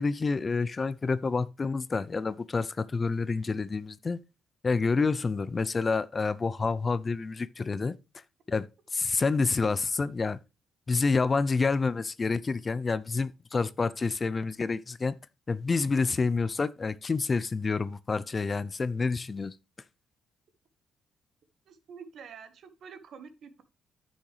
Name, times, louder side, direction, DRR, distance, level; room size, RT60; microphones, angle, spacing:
voice 1, 0.0-4.2 4.6-8.0 8.5-8.7 8.9-10.4 10.9-15.2 15.5-19.5, left 4 dB, 30° left, 0.5 m, -28 dB
voice 2, 21.7-23.6, right 6 dB, 65° right, 1.4 m, -47 dB
10.0 x 6.3 x 3.2 m
cardioid pair, 90°, 0 cm